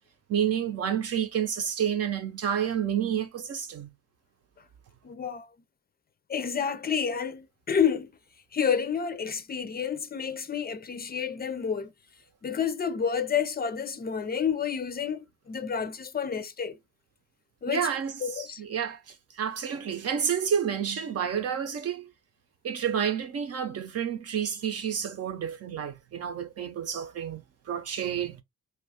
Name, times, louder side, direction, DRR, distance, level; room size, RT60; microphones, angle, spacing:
voice 1, 0.3-3.9 17.7-19.0 19.4-22.1 22.6-27.4 27.7-28.4, right 8 dB, 55° right, 0.8 m, -29 dB
voice 2, 5.0-5.5 6.3-8.1 8.5-11.9 12.4-16.8 17.6-17.9 18.2-18.6, left 7 dB, 30° left, 0.5 m, -29 dB
2.7 x 2.4 x 3.4 m
cardioid pair, 90°, 30 cm